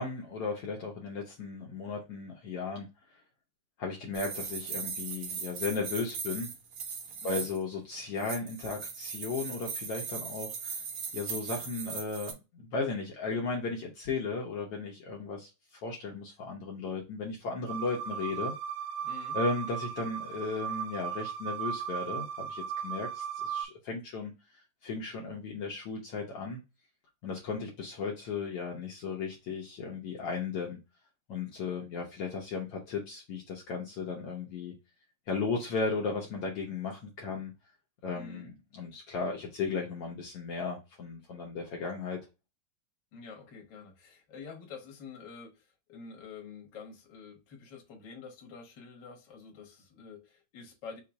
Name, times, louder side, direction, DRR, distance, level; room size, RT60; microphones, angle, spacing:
voice 1, 0.0-2.9 3.8-6.5 7.2-10.8 11.1-15.5 15.8-18.5 19.3-26.6 27.2-30.8 31.3-34.7 35.3-37.5 38.0-42.2, left 4 dB, 75° left, 1.3 m, -35 dB
sound 1, 4.1-7.6 8.2-12.3, right 6 dB, 65° right, 2.1 m, -39 dB
sound 2, 17.7-23.6, right 8 dB, 85° right, 2.2 m, -36 dB
voice 2, 19.0-19.4 38.1-38.5 43.1-51.0, left 5 dB, 60° left, 1.1 m, -48 dB
5.6 x 2.0 x 4.7 m
omnidirectional pair, 3.8 m